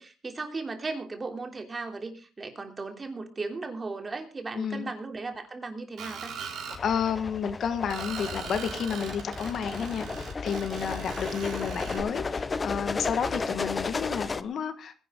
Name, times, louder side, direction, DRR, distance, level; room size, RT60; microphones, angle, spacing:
voice 1, 0.0-6.3, right 3 dB, 30° right, 3.1 m, -36 dB
voice 2, 4.5-4.9 6.8-15.0, left 7 dB, 60° left, 1.5 m, -31 dB
Screech, 6.0-6.8 7.9-12.0, right 6 dB, 75° right, 4.0 m, -40 dB
sound 1, 6.7-14.4, left 4 dB, 30° left, 0.8 m, -34 dB
20.5 x 11.0 x 3.8 m
cardioid pair, 90°, 0 cm